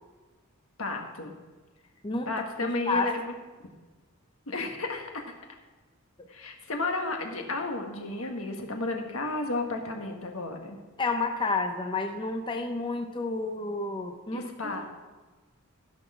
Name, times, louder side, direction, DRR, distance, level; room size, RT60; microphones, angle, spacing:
voice 1, 0.8-1.3 2.2-3.3 4.5-5.3 6.3-10.8 14.3-14.9, left 2 dB, 70° left, 3 dB, 1.6 m, -33 dB
voice 2, 2.6-3.1 11.0-14.9, left 3 dB, 20° left, 5 dB, 0.6 m, -30 dB
15.5 x 6.3 x 5.0 m, 1.3 s
head